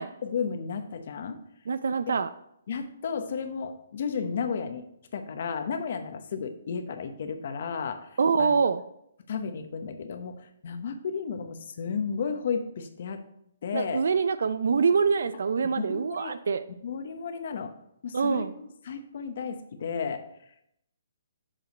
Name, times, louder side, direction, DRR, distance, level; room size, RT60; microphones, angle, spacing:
voice 1, 0.2-1.4 2.7-4.9 5.1-8.5 9.3-13.2 13.6-14.0 15.8-16.4 16.8-17.7 18.0-20.2, left 6 dB, 55° left, 8 dB, 1.0 m, -33 dB
voice 2, 1.7-2.3 8.2-8.8 13.7-16.6 18.1-18.5, right 5 dB, 75° right, 13 dB, 0.4 m, -25 dB
7.5 x 5.0 x 5.3 m, 0.76 s
hypercardioid pair, 155°, 0 cm